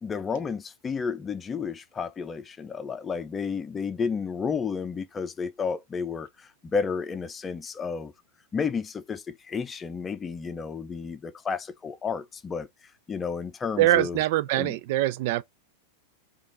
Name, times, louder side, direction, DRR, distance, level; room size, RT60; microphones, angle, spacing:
voice 1, 0.0-8.1 8.5-12.7 13.1-14.2 14.5-14.8, left 5 dB, 20° left, 0.6 m, -31 dB
voice 2, 13.8-15.4, right 15 dB, 50° right, 0.3 m, -23 dB
5.2 x 2.5 x 3.9 m
figure-of-eight pair, 90°, 0 cm